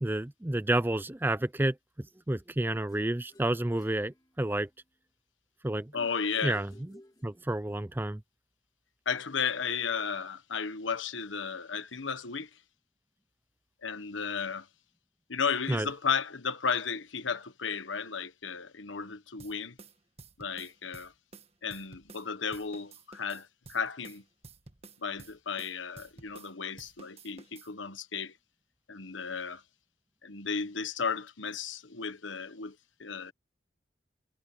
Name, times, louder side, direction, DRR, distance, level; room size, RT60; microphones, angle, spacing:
voice 1, 0.0-4.7 5.6-5.9 6.4-6.7 7.2-8.2 15.7-15.9, right 1 dB, 10° right, 0.4 m, -30 dB
sound 1, 2.9-4.8 6.3-7.9, left 1 dB, 20° left, 3.1 m, -56 dB
voice 2, 5.9-6.6 9.0-12.5 13.8-14.7 15.3-19.8 20.4-21.1 21.6-24.2 25.0-28.4 28.9-29.6 30.2-33.3, left 6 dB, 90° left, 1.3 m, -34 dB
sound 2, 19.4-22.3 22.5-26.5 26.8-27.7, right 3 dB, 35° right, 1.5 m, -52 dB
head